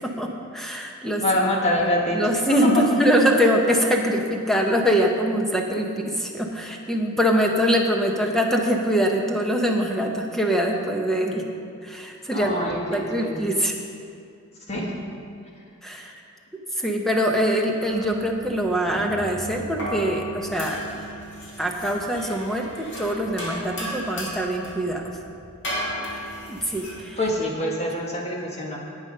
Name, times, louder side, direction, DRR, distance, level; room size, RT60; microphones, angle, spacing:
voice 1, 0.0-1.2 2.1-11.5 11.8-13.7 15.8-16.1 16.8-20.8 21.6-25.1 26.5-27.2, equal, ahead, 1 dB, 0.9 m, -23 dB
voice 2, 1.2-2.2 2.5-2.8 12.3-13.4 14.7-14.9 27.2-28.8, left 1 dB, 30° left, -2 dB, 1.6 m, -25 dB
sound 1, 17.9-27.0, equal, 55° left, 2.3 m, -35 dB
10.5 x 8.8 x 5.4 m, 2.4 s
head